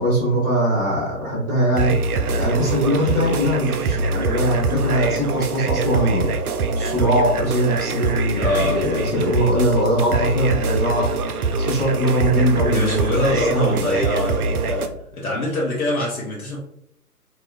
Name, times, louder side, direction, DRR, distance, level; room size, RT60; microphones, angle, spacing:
voice 1, 0.0-2.0 2.3-6.3 6.8-11.1 11.6-14.0, right 1 dB, 15° right, -7 dB, 0.5 m, -21 dB
sound 1, 1.8-14.9, right 3 dB, 70° right, 0.5 m, -24 dB
voice 2, 8.4-9.3 12.7-16.6, left 1 dB, 65° left, -3 dB, 0.9 m, -24 dB
3.5 x 2.3 x 2.5 m, 0.74 s
figure-of-eight pair, 130°, 46 cm